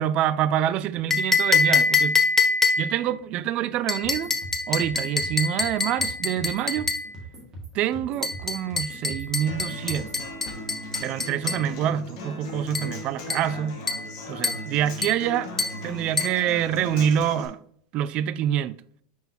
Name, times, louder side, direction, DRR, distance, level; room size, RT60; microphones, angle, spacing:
voice 1, 0.0-2.2 2.8-4.3 4.7-6.9 7.7-10.1 11.0-13.8 14.3-15.5 15.8-17.6 17.9-18.8, right 10 dB, 35° right, 0.3 m, -26 dB
sound 1, 1.1-3.1 3.9-7.1 8.2-11.7 12.7-13.0 13.3-13.5 13.9-14.1 14.4-14.7 15.0-15.2 15.6-15.8 16.2-16.4, left 4 dB, 10° left, 0.6 m, -25 dB
sound 2, 4.0-10.2, right 2 dB, 15° right, 2.1 m, -42 dB
Human voice / Acoustic guitar, 9.5-17.5, left 1 dB, 50° left, 1.7 m, -38 dB
6.0 x 5.5 x 2.8 m
supercardioid pair, 150°, 3 cm